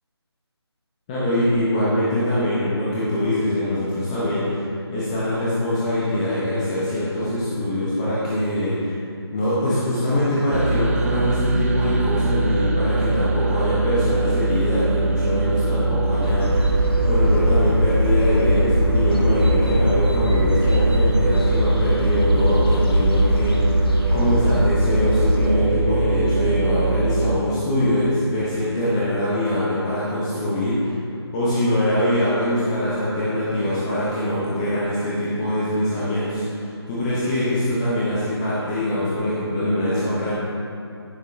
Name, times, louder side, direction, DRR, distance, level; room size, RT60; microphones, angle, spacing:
voice 1, 1.1-9.0 9.3-16.7 17.1-23.8 24.1-31.0 31.3-40.3, left 1 dB, 15° left, -9 dB, 1.1 m, -23 dB
sound 1, 10.5-27.4, right 3 dB, 30° right, 0.6 m, -22 dB
sound 2, 16.2-25.5, left 1 dB, 60° left, 1.6 m, -22 dB
15.5 x 6.8 x 3.3 m, 2.7 s
figure-of-eight pair, 155°, 14 cm